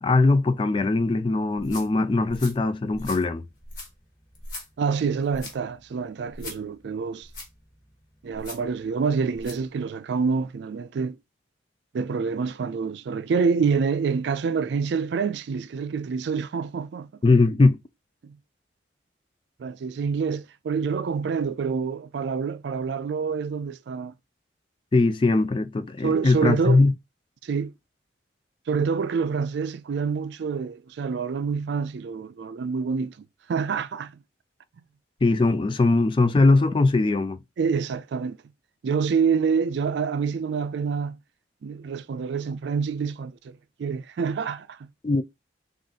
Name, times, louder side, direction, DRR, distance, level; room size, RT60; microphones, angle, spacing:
voice 1, 0.0-3.4 17.2-17.8 24.9-26.9 35.2-37.4 45.0-45.2, left 3 dB, 25° left, 0.3 m, -20 dB
sound 1, 1.5-9.7, left 2 dB, 45° left, 1.4 m, -43 dB
voice 2, 4.8-7.3 8.2-11.2 11.9-17.1 18.2-18.4 19.6-24.1 26.0-26.8 27.4-27.7 28.7-34.2 37.6-38.4 38.8-41.2 41.6-44.9, right 5 dB, 65° right, 0.3 m, -27 dB
3.9 x 2.5 x 3.6 m
head